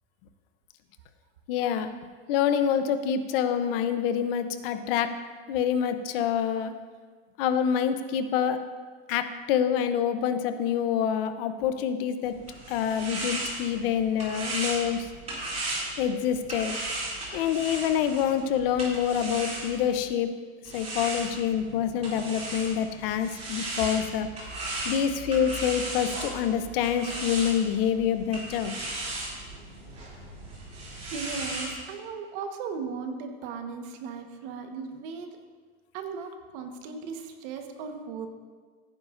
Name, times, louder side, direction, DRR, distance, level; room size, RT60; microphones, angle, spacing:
voice 1, 1.5-1.9 2.3-5.1 5.5-6.7 7.4-8.6 9.1-12.3 12.7-15.1 16.0-16.7 17.3-20.3 20.7-24.3 24.8-28.7, left 8 dB, 60° left, 9 dB, 0.8 m, -26 dB
sound 1, 12.2-20.1 20.6-31.7, right 2 dB, 20° right, 3.1 m, -36 dB
voice 2, 31.0-35.4 35.9-38.3, right 5 dB, 60° right, 5 dB, 1.4 m, -37 dB
15.0 x 9.5 x 2.6 m, 1.5 s
supercardioid pair, 145°, 31 cm